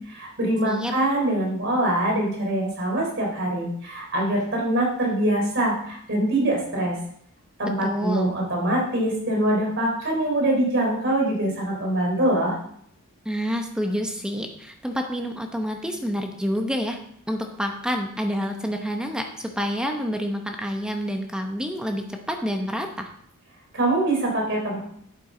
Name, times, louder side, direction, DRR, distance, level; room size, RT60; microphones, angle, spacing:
voice 1, 0.1-7.0 7.6-12.6 23.7-24.8, right 1 dB, 55° right, -1 dB, 3.9 m, -24 dB
voice 2, 7.8-8.3 13.2-17.0 17.3-23.1, equal, 5° right, 3 dB, 0.8 m, -28 dB
10.5 x 8.7 x 3.8 m, 0.67 s
head